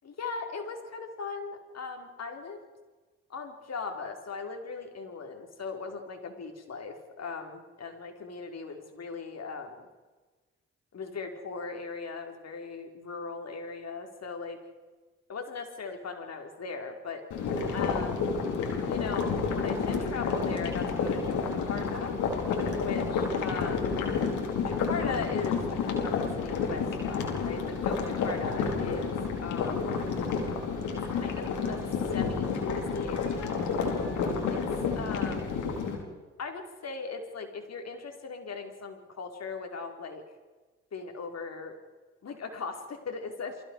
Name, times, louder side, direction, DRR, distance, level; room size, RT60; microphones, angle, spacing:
voice 1, 0.0-2.6 3.3-9.9 10.9-14.6 15.3-17.2 17.7-18.3 18.8-22.2 22.8-23.9 24.6-30.0 30.9-31.8 32.1-33.6 34.5-34.7 34.9-35.6 36.4-40.2 40.9-41.8 42.2-43.6, left 4 dB, 55° left, 4 dB, 5.0 m, -38 dB
sound 1, 17.3-35.9, left 5 dB, 80° left, 4.8 m, -30 dB
30.0 x 24.0 x 5.0 m, 1.3 s
hypercardioid pair, 45°, 30 cm